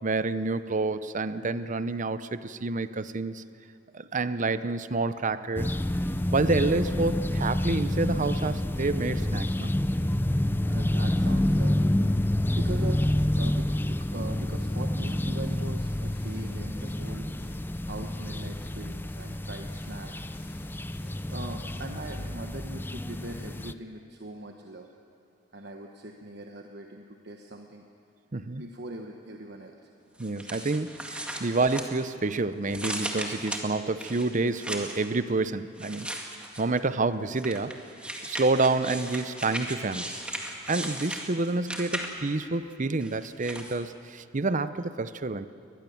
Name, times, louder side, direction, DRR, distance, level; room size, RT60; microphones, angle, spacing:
voice 1, 0.0-3.4 3.9-5.7 6.3-9.7 28.3-28.6 30.2-36.1 36.6-37.7 38.3-40.1 40.7-45.5, right 3 dB, 40° right, 13 dB, 0.7 m, -28 dB
sound 1, 5.6-23.7, left 1 dB, 10° left, 0.5 m, -28 dB
voice 2, 10.6-11.9 12.4-17.4 17.8-20.3 21.0-24.9 25.5-27.9 28.5-29.9 31.4-31.5, right 2 dB, 55° right, 3 dB, 1.2 m, -41 dB
sound 2, 15.8-17.5 17.9-18.9 19.1-19.3 19.7-22.2, left 1 dB, 55° left, 5.7 m, -52 dB
sound 3, 30.2-32.3 32.7-35.1 35.8-36.8 37.4-42.4 43.0-43.8, right 1 dB, 5° right, 2.0 m, -37 dB
23.0 x 19.5 x 7.1 m, 2.5 s
head